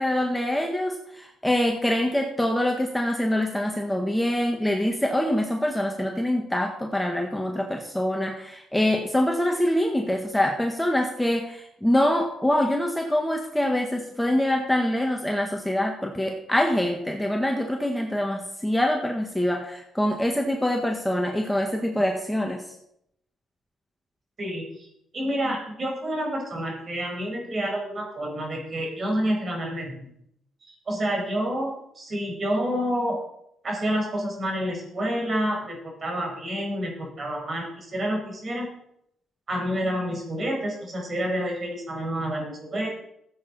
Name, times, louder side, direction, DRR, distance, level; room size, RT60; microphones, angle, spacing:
voice 1, 0.0-22.6, left 1 dB, 5° left, 1 dB, 1.5 m, -25 dB
voice 2, 24.4-24.7 25.1-30.1 30.9-33.2 33.6-38.7 39.5-42.9, equal, 40° right, 0 dB, 5.0 m, -28 dB
15.0 x 8.0 x 4.1 m, 0.75 s
cardioid pair, 90°, 0 cm